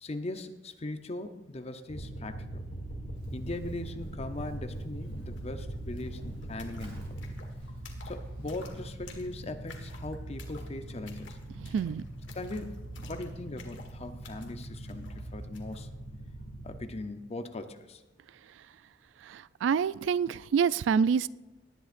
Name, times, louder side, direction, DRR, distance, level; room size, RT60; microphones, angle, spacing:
voice 1, 0.0-2.6 3.3-7.2 8.1-11.4 12.3-15.9 16.6-18.0, left 2 dB, 35° left, 8 dB, 0.7 m, -40 dB
sound 1, 1.9-16.8, right 1 dB, 70° left, 2.6 m, -41 dB
Livestock farm animals working animals, 3.1-9.2, equal, 60° right, 3.2 m, -55 dB
sound 2, 5.4-5.5 5.7-15.9, left 5 dB, 85° left, 1.6 m, -54 dB
voice 2, 11.6-12.0 19.2-21.3, right 6 dB, 80° right, 20 dB, 0.3 m, -27 dB
18.0 x 10.5 x 2.5 m, 1.1 s
head